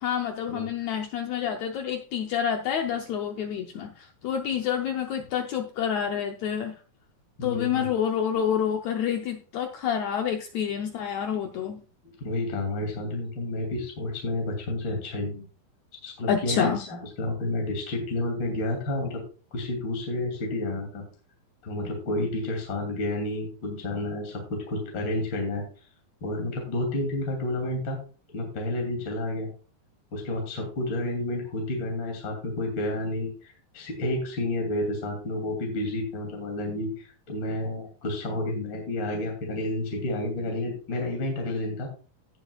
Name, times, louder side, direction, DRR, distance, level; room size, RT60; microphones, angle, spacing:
voice 1, 0.0-6.7 7.4-11.8 16.3-16.8, left 8 dB, 80° left, 4 dB, 1.6 m, -28 dB
voice 2, 7.4-7.9 12.2-15.4 16.0-19.2 19.5-21.0 21.6-25.6 26.2-28.0 28.3-29.5 30.1-41.9, left 1 dB, 35° left, 1 dB, 3.2 m, -30 dB
18.0 x 6.9 x 2.4 m, 0.36 s
omnidirectional pair, 4.2 m